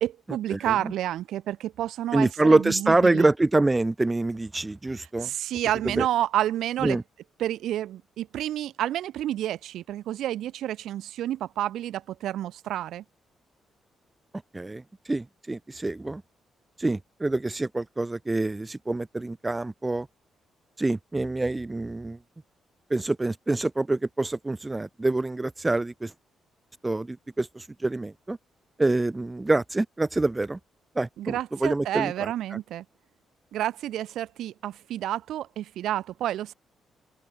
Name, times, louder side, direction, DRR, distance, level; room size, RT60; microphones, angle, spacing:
voice 1, 0.0-3.3 5.2-7.0 7.4-13.0 31.2-32.9 33.5-36.5, right 12 dB, 80° right, 1.6 m, -29 dB
voice 2, 0.5-0.9 2.1-5.3 5.8-6.1 6.8-7.0 14.5-16.2 16.8-20.1 20.8-22.2 22.9-26.1 26.8-28.4 28.8-30.6 31.0-32.6, right 2 dB, 20° right, 0.4 m, -26 dB
open air
cardioid pair, 75°, 0 cm